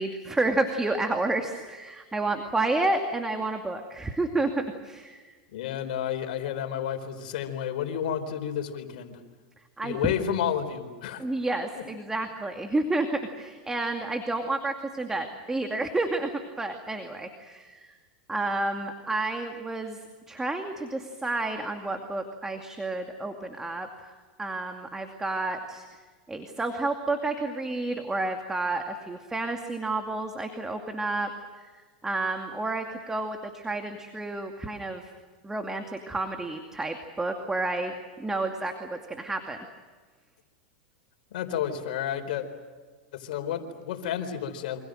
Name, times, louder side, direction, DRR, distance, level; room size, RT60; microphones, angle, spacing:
voice 1, 0.0-5.4 9.8-10.0 11.2-17.9 18.3-20.0 20.3-24.1 24.4-25.9 26.3-31.3 31.6-35.1 35.4-37.9 38.2-39.6, right 2 dB, 10° right, 5 dB, 2.4 m, -30 dB
voice 2, 5.5-9.2 9.8-11.2 41.3-42.5 43.1-44.8, left 9 dB, 70° left, 7 dB, 4.3 m, -31 dB
28.5 x 26.0 x 6.6 m, 1.5 s
hypercardioid pair, 115°, 5 cm